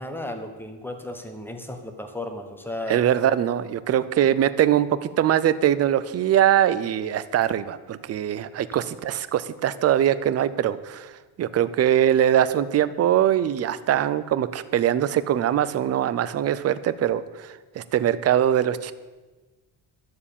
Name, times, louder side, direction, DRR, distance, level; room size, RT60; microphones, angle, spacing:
voice 1, 0.0-3.0, left 1 dB, 5° left, 6 dB, 1.2 m, -34 dB
voice 2, 2.9-11.1 11.4-18.9, right 11 dB, 35° right, 14 dB, 0.6 m, -22 dB
12.5 x 7.3 x 8.6 m, 1.2 s
cardioid pair, 165°, 42 cm